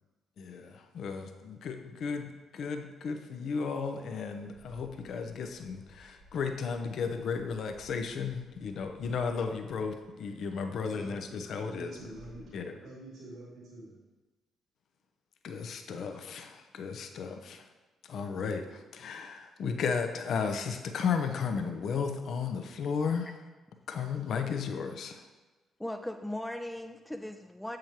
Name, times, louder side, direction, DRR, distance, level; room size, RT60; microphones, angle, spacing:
voice 1, 0.4-12.0 12.5-12.8 15.4-17.6 18.0-23.3 23.9-25.2, left 5 dB, 60° left, 6 dB, 0.6 m, -34 dB
Bird, 4.5-12.5, equal, 80° left, 1.2 m, -59 dB
voice 2, 10.8-11.2 11.6-12.6 12.8-14.0, right 1 dB, 70° right, -7 dB, 2.5 m, -46 dB
voice 3, 25.8-27.8, left 1 dB, 5° left, 6 dB, 0.5 m, -38 dB
7.6 x 7.5 x 2.9 m, 1.2 s
hypercardioid pair, 45°, 0 cm